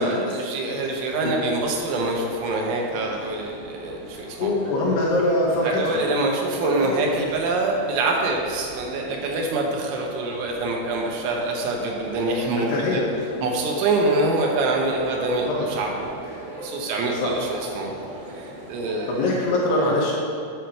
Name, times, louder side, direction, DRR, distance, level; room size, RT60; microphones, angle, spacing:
voice 1, 0.0-4.5 5.6-13.0 13.4-17.9 18.4-19.3 19.8-19.9, right 2 dB, 85° right, 0 dB, 3.4 m, -25 dB
sound 1, 0.7-19.4, right 1 dB, 65° right, 2.1 m, -41 dB
voice 2, 4.4-6.0 6.6-6.9 12.6-13.1 15.5-15.7 17.1-17.3 19.1-20.1, left 2 dB, 70° left, -4 dB, 2.9 m, -23 dB
8.5 x 4.5 x 6.5 m, 2.5 s
omnidirectional pair, 5.4 m